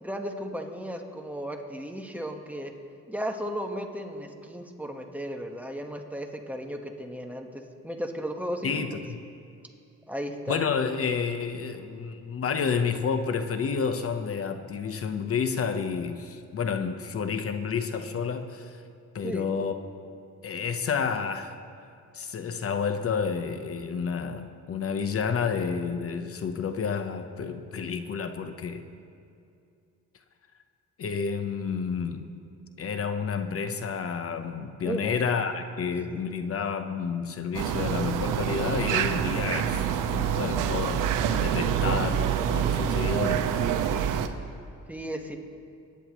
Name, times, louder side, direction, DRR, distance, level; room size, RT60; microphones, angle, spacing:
voice 1, 0.0-2.7 3.1-8.8 10.1-10.7 19.2-19.5 34.8-35.3 44.9-45.4, equal, 5° right, 1.3 m, -35 dB
voice 2, 8.6-9.2 10.5-18.8 19.1-19.7 20.4-21.5 22.1-28.8 31.0-32.3 32.8-39.8 40.1-43.6, left 6 dB, 50° left, 0.9 m, -30 dB
sound 1, 37.5-44.3, right 8 dB, 85° right, 0.8 m, -26 dB
23.0 x 10.5 x 3.0 m
cardioid pair, 80°, 31 cm